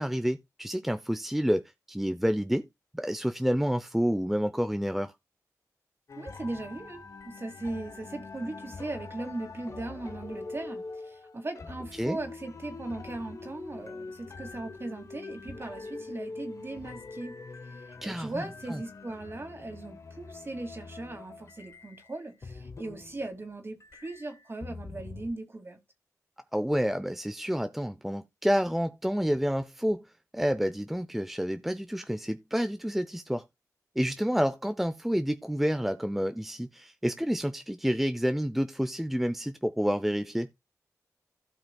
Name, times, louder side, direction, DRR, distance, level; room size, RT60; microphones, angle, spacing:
voice 1, 0.0-1.6 1.9-2.6 2.9-5.1 12.0-12.2 18.0-18.3 18.7-18.8 26.5-30.0 30.3-33.4 34.0-40.5, equal, 5° right, 0.6 m, -29 dB
sound 1, 6.1-23.5 23.8-25.3, left 3 dB, 55° left, 1.0 m, -44 dB
voice 2, 6.2-17.4 17.7-25.8, right 2 dB, 40° right, 2.4 m, -38 dB
16.0 x 5.6 x 2.3 m
cardioid pair, 55°, 6 cm